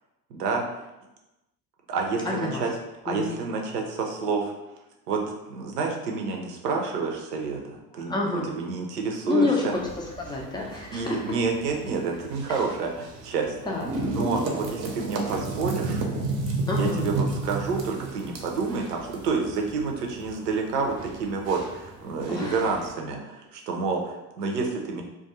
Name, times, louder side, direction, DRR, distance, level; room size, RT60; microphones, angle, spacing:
voice 1, 0.3-0.8 1.9-2.7 3.0-4.5 5.1-9.5 10.9-13.5 14.0-16.0 16.7-25.0, right 4 dB, 80° right, 1 dB, 0.6 m, -29 dB
voice 2, 2.2-2.6 3.1-3.4 7.9-8.5 9.3-11.4 12.5-12.6 13.6-13.9 16.7-17.1 22.3-22.6, left 3 dB, 10° left, -1 dB, 0.3 m, -28 dB
sound 1, 9.7-22.9, right 2 dB, 35° right, 0.6 m, -33 dB
2.3 x 2.2 x 2.8 m, 1.0 s
hypercardioid pair, 70°, 46 cm